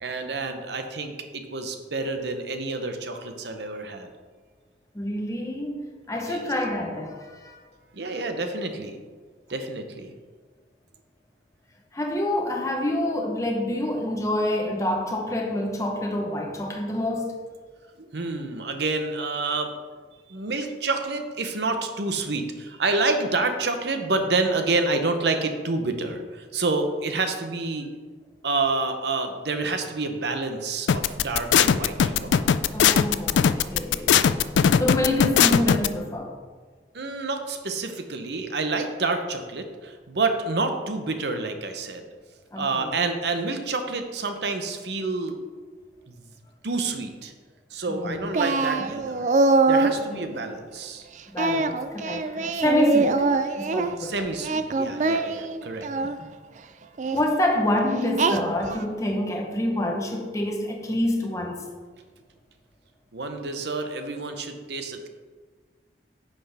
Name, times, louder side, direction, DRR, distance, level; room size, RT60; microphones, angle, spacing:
voice 1, 0.0-4.1 6.2-6.4 7.9-9.0 9.5-10.1 18.0-19.7 20.3-27.9 28.4-32.3 36.9-42.0 42.6-45.4 46.1-46.2 46.6-47.3 47.7-49.3 49.7-51.1 54.0-55.9 63.1-65.1, right 3 dB, 65° right, 0.8 m, -28 dB
voice 2, 4.9-7.6 11.9-17.4 32.7-34.3 34.8-36.3 42.5-43.0 47.9-48.3 48.8-48.9 50.1-50.4 51.3-53.3 53.5-54.3 57.1-61.7, left 1 dB, 15° left, 0.8 m, -27 dB
sound 1, 30.9-35.9, left 8 dB, 80° left, 0.3 m, -18 dB
Singing, 48.3-50.0 51.4-53.9 54.4-56.2 57.0-57.2 58.2-58.8, right 3 dB, 40° right, 0.4 m, -23 dB
9.8 x 5.9 x 3.4 m
head